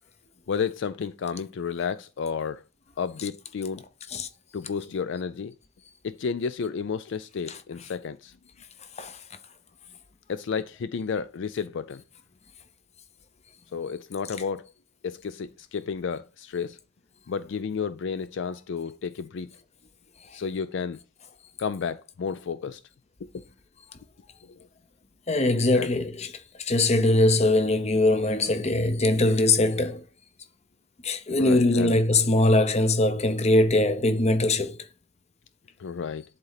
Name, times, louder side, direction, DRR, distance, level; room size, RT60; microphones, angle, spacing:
voice 1, 0.5-2.6 3.0-3.8 4.5-5.5 6.0-8.3 10.3-12.0 13.7-14.7 15.0-16.8 17.3-19.5 20.3-21.0 21.6-22.8 24.5-24.6 25.7-25.9 31.4-32.0 35.8-36.2, left 6 dB, 65° left, 0.4 m, -31 dB
voice 2, 25.3-26.3 26.6-30.0 31.0-34.8, left 2 dB, 35° left, 0.8 m, -22 dB
10.5 x 4.3 x 4.0 m
head